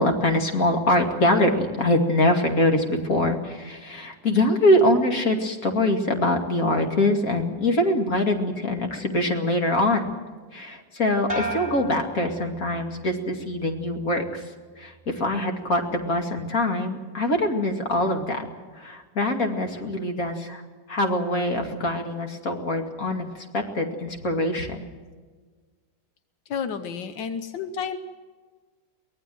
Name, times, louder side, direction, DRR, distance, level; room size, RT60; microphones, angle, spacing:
voice 1, 0.0-10.1 10.5-14.4 14.8-18.5 18.7-20.6 20.9-24.9, left 1 dB, 50° left, 4 dB, 2.9 m, -24 dB
sound 1, 11.3-13.0 13.4-14.0, equal, 10° right, 5.7 m, -34 dB
voice 2, 26.5-28.0, left 6 dB, 85° left, 10 dB, 1.7 m, -31 dB
23.5 x 19.0 x 7.8 m, 1.4 s
omnidirectional pair, 1.9 m